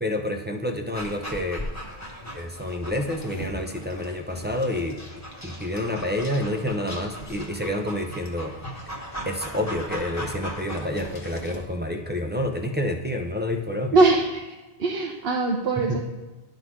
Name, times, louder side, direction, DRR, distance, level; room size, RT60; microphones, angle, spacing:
voice 1, 0.0-1.6 2.3-5.0 5.4-8.6 9.3-14.0 15.8-16.0, left 1 dB, 15° right, 4 dB, 0.4 m, -28 dB
Dog, 0.9-11.7, equal, 15° left, 1.1 m, -38 dB
voice 2, 13.9-14.4 14.8-16.0, right 3 dB, 70° right, 0 dB, 0.9 m, -21 dB
11.0 x 3.9 x 4.8 m, 1.1 s
omnidirectional pair, 1.1 m